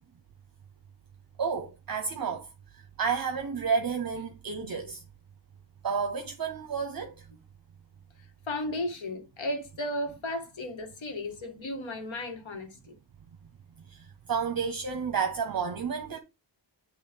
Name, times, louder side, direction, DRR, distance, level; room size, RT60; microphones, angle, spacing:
voice 1, 1.4-2.5 2.7-5.0 5.8-7.3 13.9-16.2, right 6 dB, 50° right, 0.8 m, -31 dB
voice 2, 8.5-12.7, left 1 dB, 80° left, 1.9 m, -34 dB
8.4 x 3.1 x 5.3 m
wide cardioid pair, 140°, 46 cm